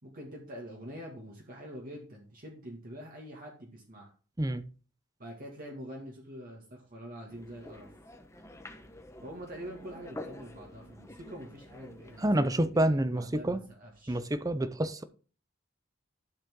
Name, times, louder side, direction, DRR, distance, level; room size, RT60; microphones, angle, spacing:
voice 1, 0.0-4.1 5.2-7.9 9.2-14.2, equal, 45° right, 2.2 m, -45 dB
sound 1, 7.3-12.4, left 1 dB, 15° left, 1.1 m, -48 dB
voice 2, 12.2-13.6 14.1-15.0, right 1 dB, 15° right, 0.6 m, -28 dB
12.0 x 7.3 x 3.8 m
head